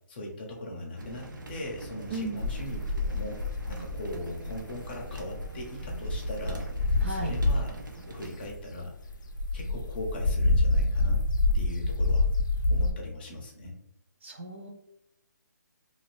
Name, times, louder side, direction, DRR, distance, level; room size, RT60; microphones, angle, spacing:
voice 1, 0.1-3.4 3.7-7.7 8.1-8.9 9.5-11.2 11.5-12.3 12.7-13.7, left 1 dB, 30° left, 0 dB, 0.7 m, -39 dB
sound 1, 1.0-8.5, right 2 dB, 85° right, 0.6 m, -44 dB
sound 2, 2.4-7.9 8.3-12.9, left 2 dB, 90° left, 0.5 m, -27 dB
voice 2, 7.0-7.4 14.2-14.7, right 2 dB, 35° right, 2 dB, 0.4 m, -34 dB
2.6 x 2.5 x 3.2 m, 0.81 s
hypercardioid pair, 165°, 10 cm